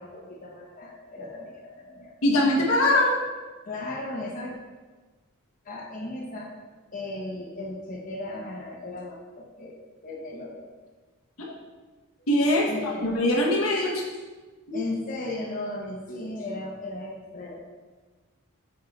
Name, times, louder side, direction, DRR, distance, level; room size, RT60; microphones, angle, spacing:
voice 1, 0.0-2.1 3.6-4.5 5.6-6.5 6.9-10.7 12.6-13.1 14.7-17.5, left 2 dB, 40° left, -3 dB, 1.1 m, -36 dB
voice 2, 2.2-3.1 11.4-11.5 12.3-14.0 14.7-14.8, left 1 dB, 80° left, -2 dB, 1.4 m, -22 dB
7.6 x 5.7 x 3.3 m, 1.3 s
head